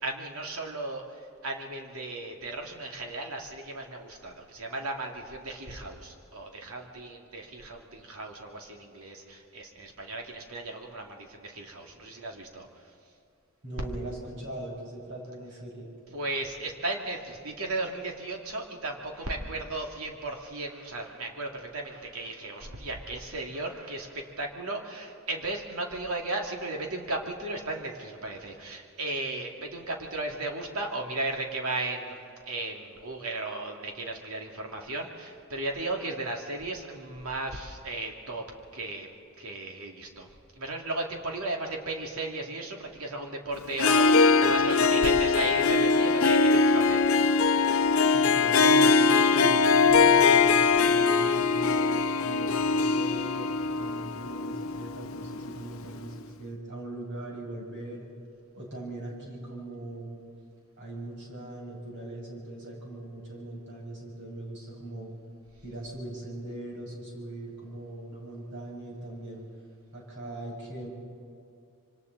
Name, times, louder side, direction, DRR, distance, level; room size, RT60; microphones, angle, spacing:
voice 1, 0.0-12.7 16.1-38.4 38.7-39.1 39.4-40.3 40.5-47.2, right 2 dB, 90° right, 1 dB, 2.6 m, -35 dB
voice 2, 13.6-15.9 48.1-58.1 58.5-60.2 60.8-65.1 65.6-69.4 69.9-70.9, right 1 dB, 55° right, -3 dB, 6.3 m, -40 dB
Harp, 43.7-55.6, left 4 dB, 75° left, 0.7 m, -22 dB
26.5 x 24.5 x 4.1 m, 2.5 s
head